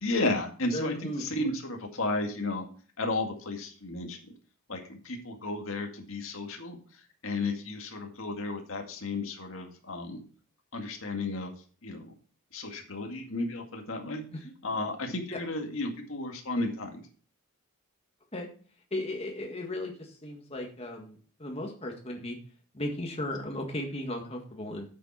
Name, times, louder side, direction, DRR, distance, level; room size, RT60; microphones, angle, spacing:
voice 1, 0.0-2.7 3.0-4.2 4.7-10.2 10.7-11.5 11.8-12.1 12.5-14.2 14.6-17.0, left 2 dB, 65° left, 3 dB, 2.0 m, -33 dB
voice 2, 0.7-1.3 14.3-14.5 15.3-15.4 18.3-18.5 18.9-22.4 22.7-24.8, left 1 dB, 25° left, 1 dB, 1.8 m, -36 dB
9.3 x 7.7 x 4.3 m, 0.42 s
head